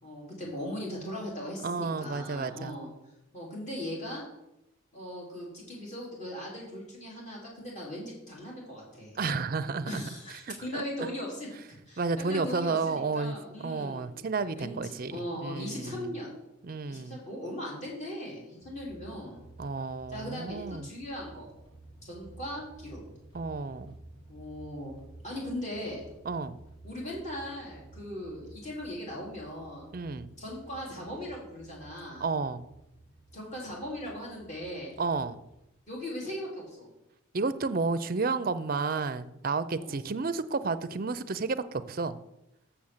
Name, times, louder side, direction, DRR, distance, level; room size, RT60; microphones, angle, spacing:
voice 1, 0.0-2.9 3.3-4.2 4.9-9.2 9.9-11.5 11.9-14.1 14.5-16.4 16.9-19.4 20.1-21.5 22.0-23.0 24.3-25.0 25.2-26.0 26.8-29.9 30.4-32.3 33.3-34.9 35.9-36.9 39.7-40.0, left 1 dB, 35° left, -4 dB, 3.8 m, -39 dB
voice 2, 1.6-2.8 9.2-10.0 10.4-11.1 12.0-13.3 13.6-16.2 16.6-17.2 19.6-20.9 23.3-24.0 26.3-26.6 29.9-30.3 32.2-32.6 35.0-35.4 37.3-42.2, right 4 dB, 45° right, 12 dB, 0.5 m, -31 dB
sound 1, 18.6-35.8, right 2 dB, 80° left, 3.2 m, -53 dB
7.1 x 6.4 x 7.2 m, 0.88 s
head